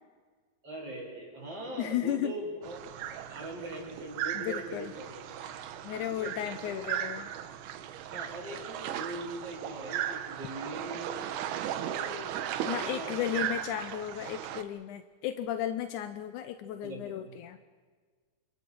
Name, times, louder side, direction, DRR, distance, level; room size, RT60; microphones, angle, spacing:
voice 1, 0.6-2.9 3.3-5.2 6.1-6.4 6.6-6.8 8.1-11.2 11.6-13.5 16.8-17.3, right 1 dB, 40° right, -2 dB, 7.1 m, -41 dB
voice 2, 1.8-2.3 4.3-4.9 5.4-5.6 5.8-7.3 12.7-17.6, left 11 dB, 75° left, 8 dB, 1.8 m, -34 dB
sound 1, 2.6-14.6, right 10 dB, 80° right, 2.9 m, -37 dB
30.0 x 26.5 x 4.7 m, 1.5 s
omnidirectional pair, 4.5 m